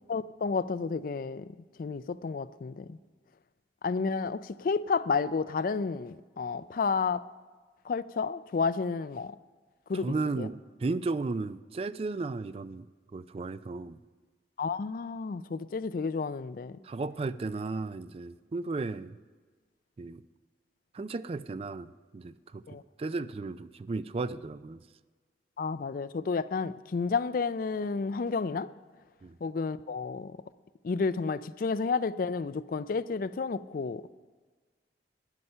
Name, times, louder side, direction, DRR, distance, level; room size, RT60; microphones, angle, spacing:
voice 1, 0.0-1.5 1.8-3.0 3.8-7.2 7.9-9.3 9.9-10.5 14.6-16.8 22.7-22.8 25.6-28.7 29.4-30.4 30.8-34.1, left 4 dB, 50° left, 0.4 m, -31 dB
voice 2, 10.0-12.9 13.1-14.0 16.8-19.1 20.0-20.2 20.9-22.6 23.0-24.8 29.2-29.3, right 3 dB, 35° right, 0.3 m, -34 dB
12.0 x 9.8 x 5.5 m
head